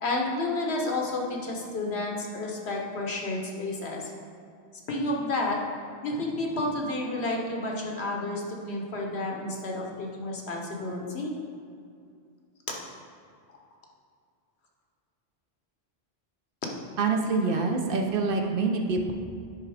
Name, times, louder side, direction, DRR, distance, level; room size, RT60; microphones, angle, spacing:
voice 1, 0.0-4.1 4.9-5.6 6.0-11.3, left 2 dB, 80° left, 0 dB, 1.3 m, -31 dB
voice 2, 17.0-19.1, right 4 dB, 60° right, 3 dB, 0.8 m, -26 dB
9.9 x 3.5 x 4.8 m, 2.3 s
omnidirectional pair, 1.1 m